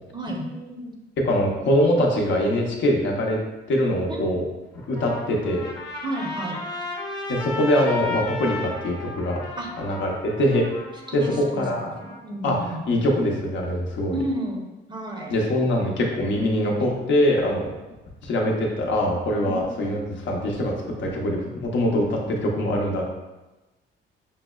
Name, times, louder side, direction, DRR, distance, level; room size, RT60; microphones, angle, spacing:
voice 1, 0.1-1.0 4.1-4.2 6.0-6.7 9.6-9.7 11.1-12.8 14.1-14.6 14.9-15.4 19.4-19.6, right 1 dB, 25° right, 0 dB, 0.6 m, -32 dB
voice 2, 1.2-3.4 3.7-4.4 4.9-5.6 7.3-9.4 9.8-10.6 11.1-11.9 12.4-12.6 12.9-14.2 15.3-17.6 18.2-20.7 21.0-23.1, left 1 dB, 70° left, 0 dB, 0.7 m, -23 dB
Trumpet, 4.7-12.2, left 2 dB, 20° left, 0.7 m, -34 dB
5.4 x 2.0 x 2.3 m, 1.1 s
cardioid pair, 90°, 20 cm